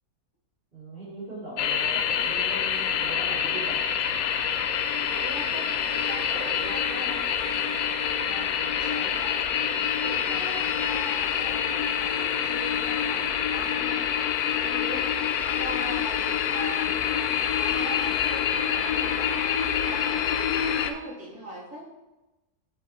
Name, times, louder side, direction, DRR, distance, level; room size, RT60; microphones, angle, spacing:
voice 1, 0.7-3.8, right 1 dB, 35° right, -13 dB, 3.1 m, -39 dB
sound 1, 1.6-20.9, left 8 dB, 80° left, 1.1 m, -26 dB
voice 2, 5.1-9.4 10.0-19.5 19.8-20.3 20.8-22.0, right 1 dB, 70° right, -9 dB, 3.4 m, -41 dB
8.6 x 6.6 x 3.0 m, 1.0 s
omnidirectional pair, 1.7 m